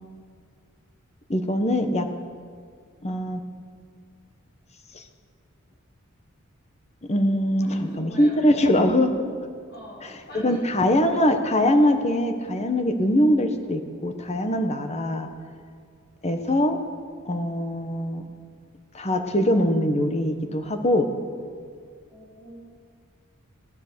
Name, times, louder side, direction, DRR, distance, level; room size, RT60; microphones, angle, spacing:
voice 1, 1.3-2.1 3.0-3.4 4.9-5.0 7.1-9.1 10.0-10.1 10.4-15.3 16.2-16.8 17.2-18.3 18.9-21.1, left 1 dB, 30° left, 6 dB, 1.2 m, -22 dB
voice 2, 7.6-8.6 9.7-10.9 22.1-22.6, equal, 50° left, -4 dB, 5.5 m, -41 dB
18.0 x 10.5 x 6.8 m, 2.1 s
head